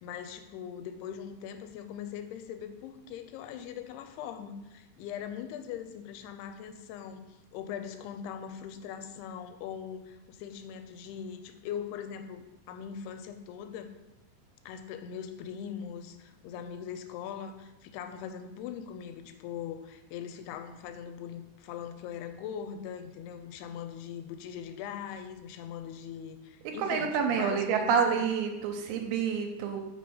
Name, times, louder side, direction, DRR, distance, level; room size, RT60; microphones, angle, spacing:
voice 1, 0.0-7.3 7.5-13.9 14.7-28.2, left 8 dB, 85° left, 8 dB, 2.6 m, -41 dB
voice 2, 26.8-29.8, right 6 dB, 80° right, 3 dB, 2.6 m, -28 dB
5.7 x 5.1 x 5.3 m, 1.0 s
omnidirectional pair, 4.7 m